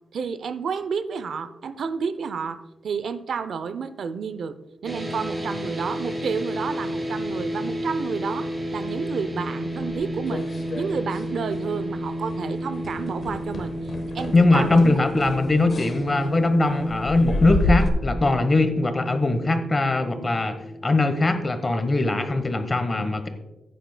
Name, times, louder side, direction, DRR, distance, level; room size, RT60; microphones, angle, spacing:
voice 1, 0.1-4.6 4.8-15.0, right 6 dB, 70° right, 12 dB, 0.6 m, -30 dB
sound 1, 4.8-21.2, equal, 25° right, 3.8 m, -32 dB
sound 2, 9.8-11.3 11.5-11.9 12.2-12.4 12.8-17.9, left 2 dB, 50° left, 1.1 m, -30 dB
voice 2, 14.3-20.6 20.8-23.3, left 2 dB, 30° left, 8 dB, 1.1 m, -21 dB
15.0 x 9.1 x 2.2 m, 1.0 s
cardioid pair, 105°, 0 cm